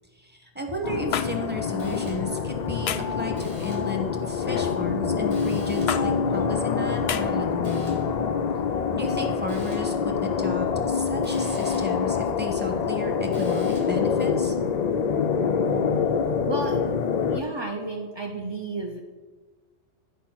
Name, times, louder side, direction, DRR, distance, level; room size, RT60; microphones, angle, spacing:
voice 1, 0.2-8.0 8.9-14.5, left 2 dB, 10° right, 3 dB, 1.0 m, -33 dB
sound 1, 0.8-17.4, left 6 dB, 85° left, 0.3 m, -26 dB
sound 2, 1.1-1.3 2.9-3.2 4.5-4.8 5.9-6.0 7.1-7.2, left 9 dB, 65° left, 0.7 m, -28 dB
sound 3, 1.8-2.5 3.3-4.0 5.3-6.1 7.6-8.2 9.5-10.0 11.2-12.0 13.3-14.1, right 1 dB, 60° right, 2.4 m, -49 dB
voice 2, 16.5-16.9 17.3-19.0, right 2 dB, 40° right, 2 dB, 0.4 m, -32 dB
10.0 x 4.7 x 6.0 m, 1.4 s
omnidirectional pair, 1.3 m